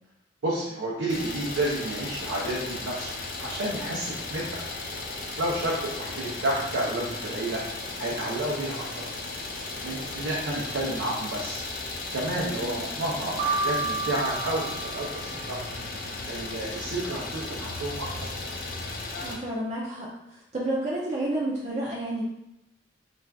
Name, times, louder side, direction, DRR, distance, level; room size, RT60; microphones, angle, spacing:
voice 1, 0.4-3.1 3.4-4.6 5.4-7.6 8.0-9.1 9.8-11.6 12.1-15.6 16.2-18.3, right 1 dB, 80° right, -5 dB, 0.6 m, -30 dB
Idling, 1.1-19.4, left 3 dB, 50° left, 0.4 m, -35 dB
Piano, 13.4-15.5, right 3 dB, 50° right, 0.8 m, -31 dB
voice 2, 19.2-22.2, right 1 dB, 35° right, -4 dB, 0.4 m, -30 dB
2.5 x 2.3 x 3.3 m, 0.84 s
head